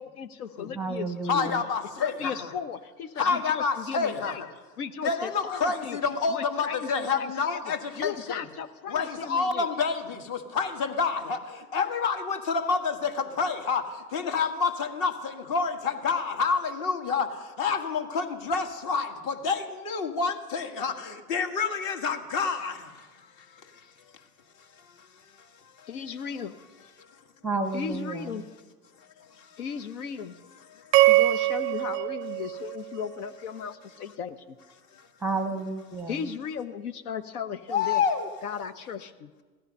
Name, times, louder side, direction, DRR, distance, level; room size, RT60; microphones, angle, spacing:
voice 1, 0.0-1.5 2.0-4.4 4.8-6.0 6.3-7.6 8.0-9.7 25.9-26.5 27.7-28.4 29.6-30.4 31.1-34.4 36.1-38.0 38.4-39.3, left 7 dB, 70° left, 9 dB, 1.0 m, -36 dB
voice 2, 0.8-1.6 27.4-28.5 35.2-36.3, right 3 dB, 5° right, 8 dB, 0.8 m, -31 dB
voice 3, 1.3-2.5 3.2-4.4 5.0-8.4 8.9-23.9 24.6-25.9 27.0-27.2 29.0-29.6 30.7-31.1 34.9-35.1 37.7-38.3, left 5 dB, 40° left, 6 dB, 1.8 m, -29 dB
sound 1, 30.9-33.3, right 18 dB, 35° right, 0.5 m, -23 dB
16.5 x 12.5 x 5.4 m, 1.3 s
hypercardioid pair, 115°, 47 cm